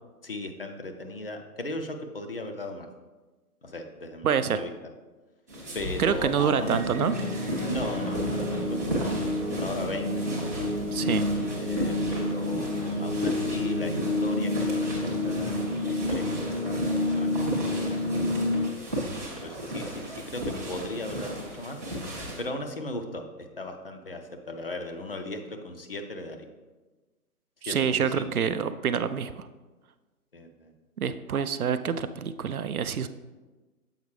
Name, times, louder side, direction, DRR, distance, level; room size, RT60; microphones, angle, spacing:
voice 1, 0.2-2.9 3.6-4.7 5.7-6.8 7.7-9.2 9.5-10.7 11.6-18.0 18.8-18.9 19.4-21.8 22.4-26.5 27.7-28.3 30.3-30.7, left 2 dB, 40° left, 5 dB, 0.6 m, -37 dB
voice 2, 4.2-4.6 6.0-7.1 10.9-11.2 27.6-29.5 31.0-33.1, right 7 dB, 70° right, 12 dB, 0.5 m, -27 dB
sound 1, 5.5-22.4, equal, 10° right, 0.6 m, -35 dB
sound 2, 7.0-18.7, left 2 dB, 80° left, 1.3 m, -29 dB
7.2 x 5.3 x 3.2 m, 1.2 s
figure-of-eight pair, 140°, 45 cm